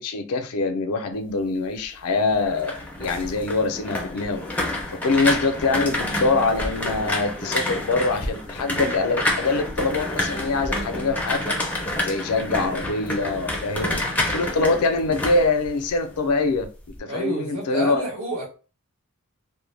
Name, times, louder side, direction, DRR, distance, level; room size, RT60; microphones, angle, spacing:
voice 1, 0.0-11.5 12.0-14.0 14.3-16.7 17.0-18.0, left 3 dB, 85° left, 0.5 m, -24 dB
sound 1, 2.3-16.3 16.6-17.0, left 1 dB, 5° left, 0.4 m, -28 dB
voice 2, 17.1-18.5, right 1 dB, 70° right, 1.1 m, -29 dB
2.2 x 2.1 x 3.1 m
head